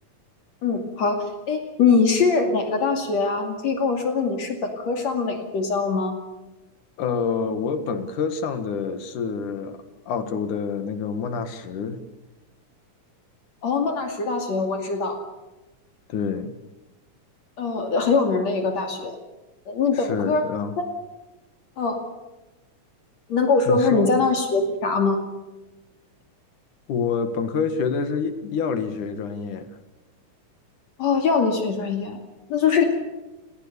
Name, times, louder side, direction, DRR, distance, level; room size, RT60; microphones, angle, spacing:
voice 1, 0.6-6.1 13.6-15.2 17.6-19.1 19.7-20.5 20.8-20.9 21.8-22.0 23.3-25.2 31.0-32.2 32.5-32.8, left 4 dB, 60° left, 4 dB, 3.6 m, -22 dB
voice 2, 7.0-9.8 10.1-12.0 16.1-16.5 19.9-20.8 23.7-24.1 26.9-29.7, left 5 dB, 90° left, 9 dB, 3.3 m, -27 dB
29.0 x 19.5 x 7.0 m, 1.1 s
omnidirectional pair, 3.5 m